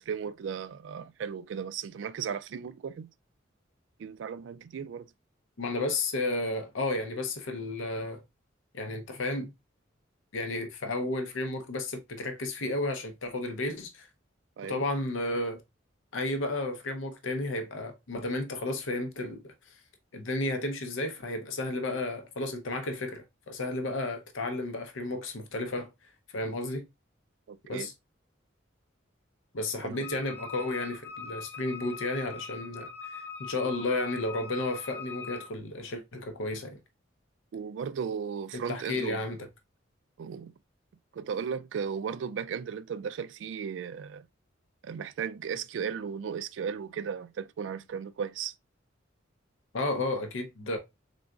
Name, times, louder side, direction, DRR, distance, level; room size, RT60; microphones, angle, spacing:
voice 1, 0.0-3.1 4.0-5.1 14.6-14.8 27.5-27.9 29.8-30.1 37.5-39.2 40.2-40.5 41.1-44.3 44.8-48.5, right 7 dB, 70° right, 0.3 m, -36 dB
voice 2, 5.6-8.2 8.7-9.5 10.3-14.1 14.6-15.6 16.1-19.5 20.1-25.9 26.3-26.8 27.7-27.9 29.5-36.8 38.5-39.5 49.7-50.8, left 2 dB, 90° left, 0.7 m, -32 dB
Wind instrument woodwind instrument, 30.0-35.5, left 5 dB, 10° left, 0.9 m, -42 dB
3.9 x 3.7 x 2.3 m
head